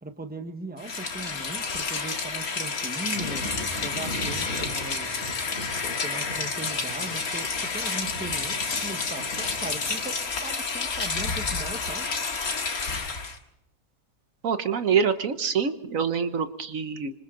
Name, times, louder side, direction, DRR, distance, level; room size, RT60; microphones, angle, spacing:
voice 1, 0.0-3.5 3.8-5.2 6.0-12.1, right 2 dB, 5° right, 6 dB, 1.3 m, -39 dB
Rain, 0.8-13.4, left 4 dB, 80° left, 2.3 m, -30 dB
Thunder, 3.1-10.2, left 1 dB, 45° left, 6.0 m, -39 dB
voice 2, 14.4-17.1, right 6 dB, 65° right, 9 dB, 1.4 m, -25 dB
26.5 x 26.0 x 3.9 m, 0.83 s
omnidirectional pair, 1.5 m